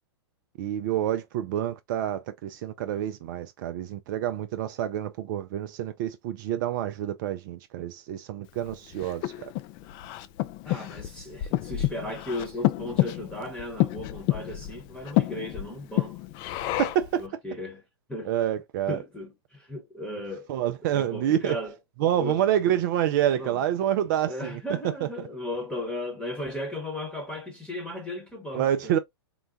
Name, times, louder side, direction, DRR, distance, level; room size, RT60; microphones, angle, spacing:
voice 1, 0.6-9.5 16.8-17.2 18.3-19.0 20.5-21.6 22.0-25.1 28.5-29.0, right 11 dB, 45° right, 0.4 m, -27 dB
Breathing, 8.6-17.2, left 16 dB, 35° left, 0.3 m, -29 dB
voice 2, 10.6-16.2 17.2-17.8 18.1-18.3 18.9-20.5 20.9-21.7 22.1-22.4 23.4-23.6 24.2-28.9, left 1 dB, 5° left, 1.0 m, -36 dB
3.8 x 2.1 x 2.5 m
hypercardioid pair, 110°, 14 cm